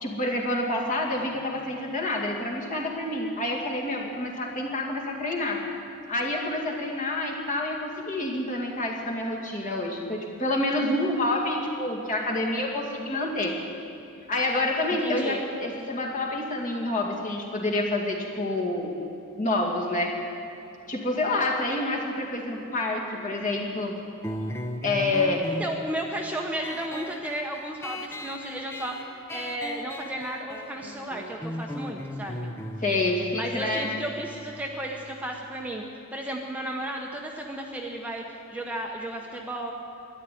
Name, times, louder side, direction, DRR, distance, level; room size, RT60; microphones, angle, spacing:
voice 1, 0.0-5.6 6.1-13.5 14.3-19.0 19.4-20.1 20.9-24.0 24.8-25.4 32.8-33.9, left 2 dB, 35° left, -2 dB, 2.2 m, -28 dB
voice 2, 14.9-15.4 25.6-32.5 33.3-39.7, right 1 dB, 5° right, 0 dB, 0.9 m, -34 dB
sound 1, 24.2-35.3, left 1 dB, 10° left, 0.7 m, -37 dB
13.0 x 11.0 x 9.3 m, 2.8 s
head